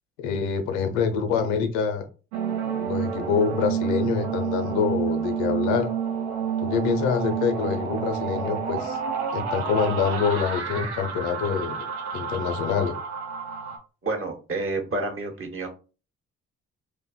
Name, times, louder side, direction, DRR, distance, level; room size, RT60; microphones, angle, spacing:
voice 1, 0.2-2.1 2.8-5.9 6.6-9.0 9.3-11.8 12.1-12.9, left 6 dB, 80° left, 8 dB, 0.6 m, -25 dB
sound 1, 2.3-13.8, right 7 dB, 90° right, 0.6 m, -29 dB
voice 2, 14.0-15.7, right 2 dB, 40° right, 3 dB, 1.1 m, -29 dB
2.5 x 2.2 x 3.8 m, 0.35 s
hypercardioid pair, 40°, 33 cm